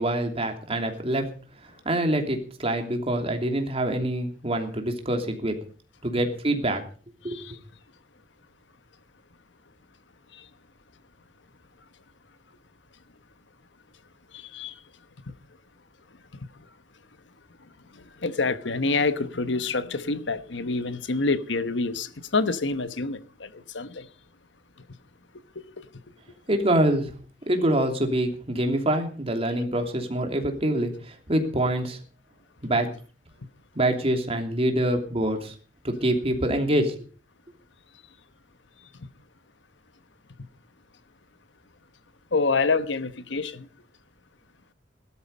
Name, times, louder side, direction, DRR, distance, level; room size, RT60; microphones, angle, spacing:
voice 1, 0.0-1.3 1.8-5.6 6.0-6.8 7.2-7.4 26.5-27.1 27.5-32.0 32.6-32.9 33.7-35.5 35.8-36.9, right 1 dB, 30° right, 2.9 m, -25 dB
voice 2, 18.2-23.5 23.7-24.0 42.3-43.6, left 3 dB, 75° left, 1.1 m, -26 dB
17.0 x 12.5 x 5.4 m
head